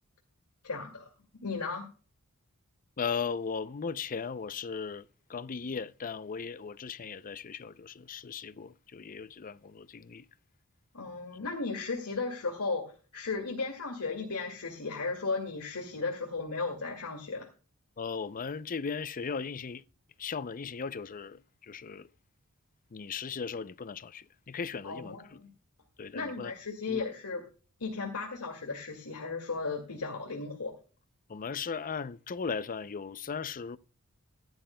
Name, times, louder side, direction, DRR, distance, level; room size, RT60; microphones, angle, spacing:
voice 1, 0.6-1.1 1.4-1.9 10.9-17.5 24.8-25.5 26.1-27.4 27.8-30.8, left 4 dB, 90° left, 2.3 m, -35 dB
voice 2, 3.0-10.2 18.0-19.8 20.2-22.1 22.9-25.4 26.0-26.5 26.9-27.0 31.3-33.8, left 5 dB, 40° left, 0.5 m, -37 dB
15.5 x 11.5 x 2.2 m
head